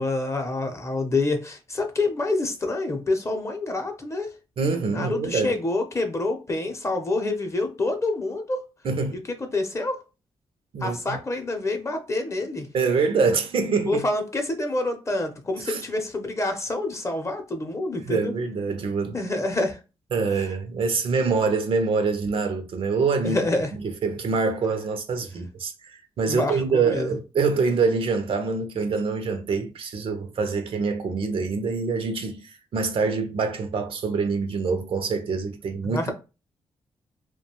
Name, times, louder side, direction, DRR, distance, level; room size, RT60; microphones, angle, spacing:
voice 1, 0.0-4.3 4.9-8.6 9.1-9.2 9.5-10.0 10.8-12.7 13.9-18.3 19.1-19.8 23.2-23.7 26.3-27.2 35.8-36.1, left 2 dB, 30° left, 0.7 m, -27 dB
voice 2, 4.6-5.6 8.8-9.2 10.7-11.2 12.7-14.0 15.7-15.8 18.0-19.2 20.1-23.4 23.8-25.7 26.2-36.1, right 4 dB, 65° right, 0.5 m, -25 dB
2.4 x 2.2 x 2.9 m
cardioid pair, 75°, 10 cm